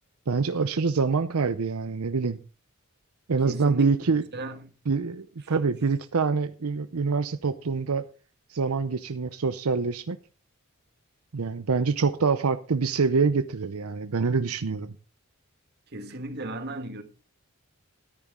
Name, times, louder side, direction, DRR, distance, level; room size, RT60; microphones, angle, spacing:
voice 1, 0.3-2.4 3.3-4.2 4.9-8.0 8.5-10.2 11.3-14.9, right 4 dB, 80° right, 0.7 m, -25 dB
voice 2, 3.4-4.7 5.4-5.5 15.9-17.0, right 1 dB, 50° right, 1.7 m, -36 dB
14.0 x 10.5 x 3.7 m
head